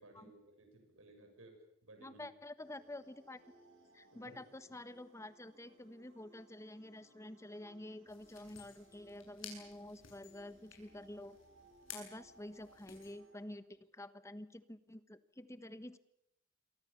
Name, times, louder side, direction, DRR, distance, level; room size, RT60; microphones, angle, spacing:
voice 1, 0.0-1.6 1.8-2.2 4.1-4.4, right 2 dB, 85° right, 4 dB, 7.5 m, -58 dB
voice 2, 2.0-3.4 3.9-11.4 11.9-16.0, left 1 dB, 15° left, 13 dB, 1.2 m, -49 dB
sound 1, 2.6-13.5, right 2 dB, 65° right, 7.1 m, -66 dB
sound 2, 8.1-13.1, left 7 dB, 70° left, 8.0 m, -55 dB
28.0 x 24.0 x 7.1 m, 0.79 s
head